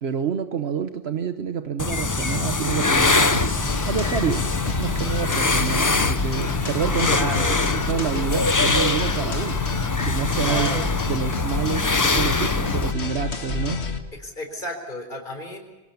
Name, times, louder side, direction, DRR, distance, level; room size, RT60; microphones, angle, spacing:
voice 1, 0.0-3.5 3.8-4.5 4.8-7.4 7.7-9.7 10.1-10.8 11.1-13.8, right 7 dB, 75° right, 8 dB, 1.3 m, -28 dB
sound 1, 1.8-12.9, left 3 dB, 20° left, 0.6 m, -24 dB
sound 2, 3.3-14.0, left 4 dB, 85° left, 2.0 m, -28 dB
voice 2, 7.1-7.6 10.4-10.8 14.2-15.6, equal, 50° left, 3 dB, 4.2 m, -32 dB
25.0 x 18.5 x 7.1 m, 1.1 s
omnidirectional pair, 1.1 m